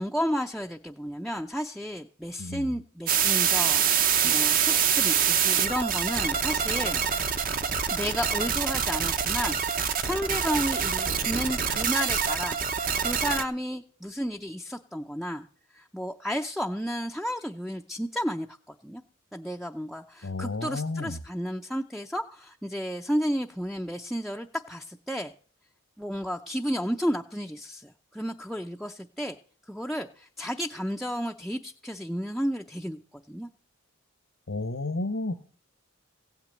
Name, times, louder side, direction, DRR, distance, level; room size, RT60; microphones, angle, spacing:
voice 1, 0.0-7.0 7.9-15.5 15.7-19.0 19.3-25.3 26.0-29.4 29.7-33.5, equal, ahead, 2 dB, 0.5 m, -32 dB
voice 2, 2.4-2.7 20.2-21.2 34.5-35.3, left 2 dB, 75° left, 3 dB, 1.2 m, -31 dB
sound 1, 3.1-13.4, right 7 dB, 45° right, 0.9 m, -25 dB
16.5 x 5.9 x 8.9 m, 0.43 s
head